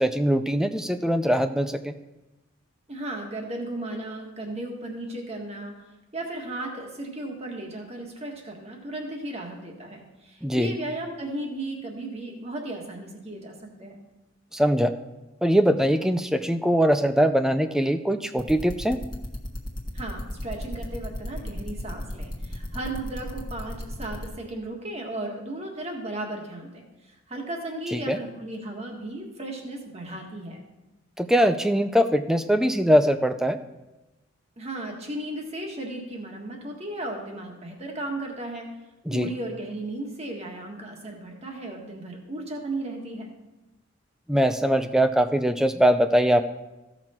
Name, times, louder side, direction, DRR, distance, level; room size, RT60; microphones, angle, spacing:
voice 1, 0.0-1.9 10.4-10.7 14.5-14.9 15.4-19.0 27.9-28.2 31.2-33.6 39.1-39.3 44.3-46.4, equal, 5° right, 9 dB, 0.4 m, -22 dB
voice 2, 2.9-5.7 6.1-13.9 19.9-30.6 34.6-38.7 39.1-43.3, right 1 dB, 30° right, 1 dB, 1.7 m, -35 dB
sound 1, 18.4-24.3, left 1 dB, 20° left, 1.3 m, -34 dB
15.0 x 6.0 x 4.4 m, 1.0 s
head